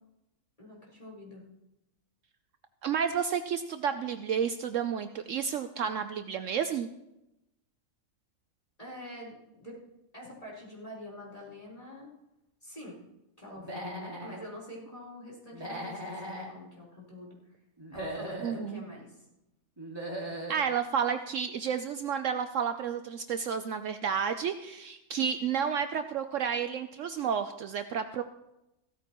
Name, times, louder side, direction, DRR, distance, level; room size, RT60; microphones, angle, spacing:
voice 1, 0.6-1.4 8.8-9.8 10.1-12.1 12.6-13.0 13.4-17.6 17.9-19.3, left 1 dB, 25° left, -6 dB, 4.0 m, -46 dB
voice 2, 2.8-6.9 18.4-18.8 20.5-28.2, right 7 dB, 65° right, 9 dB, 0.9 m, -31 dB
Human voice / Animal, 13.6-14.4 15.5-16.5 17.8-18.6 19.8-20.6, right 1 dB, 15° right, 2.2 m, -38 dB
16.0 x 13.5 x 3.0 m, 0.89 s
omnidirectional pair, 1.5 m